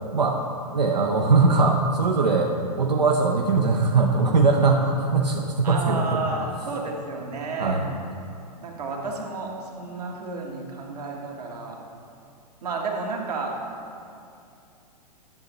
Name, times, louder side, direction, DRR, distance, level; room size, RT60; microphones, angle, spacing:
voice 1, 0.7-2.5 2.8-6.2 7.6-7.9, right 3 dB, 85° right, 1 dB, 0.6 m, -21 dB
voice 2, 5.6-7.8 8.6-11.8 12.6-13.6, right 3 dB, 70° right, 0 dB, 1.4 m, -31 dB
10.5 x 6.7 x 3.0 m, 2.5 s
figure-of-eight pair, 105°, 21 cm